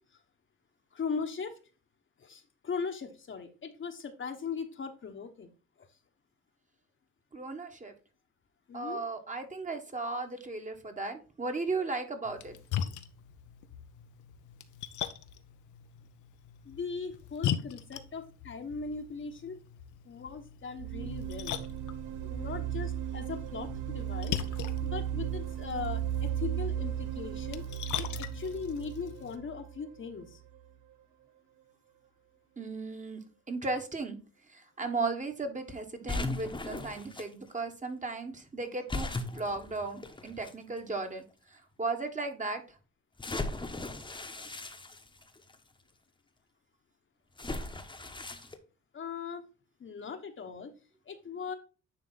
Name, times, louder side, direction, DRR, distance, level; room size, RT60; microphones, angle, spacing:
voice 1, 0.9-1.5 2.2-5.5 8.7-9.0 16.6-19.6 20.0-21.6 22.2-24.4 24.8-27.7 28.0-30.4 48.9-49.4 49.8-50.7 51.1-51.5, left 5 dB, 40° left, 1.1 m, -39 dB
voice 2, 7.3-7.9 8.7-12.6 32.6-33.2 33.5-34.2 34.5-41.2 41.5-42.6, right 3 dB, 25° right, 1.4 m, -36 dB
Splash splatter, 12.2-29.4, left 9 dB, 80° left, 0.8 m, -40 dB
sound 1, 20.8-30.6, right 10 dB, 75° right, 0.5 m, -36 dB
sound 2, 36.1-37.3 38.9-40.5 41.3-41.4 43.2-45.5 47.4-48.5, left 2 dB, 15° left, 1.0 m, -37 dB
9.6 x 3.4 x 4.0 m
cardioid pair, 90°, 30 cm